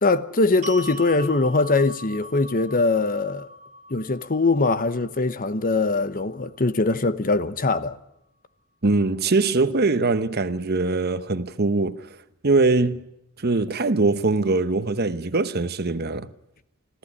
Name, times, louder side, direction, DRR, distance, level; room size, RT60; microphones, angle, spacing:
voice 1, 0.0-3.5 3.9-8.0, left 3 dB, 40° left, 1.0 m, -22 dB
sound 1, 0.6-6.8, equal, 35° right, 1.7 m, -41 dB
voice 2, 8.8-12.1 12.4-13.1 13.4-16.3, right 3 dB, 50° right, 1.0 m, -22 dB
26.0 x 14.5 x 9.8 m
head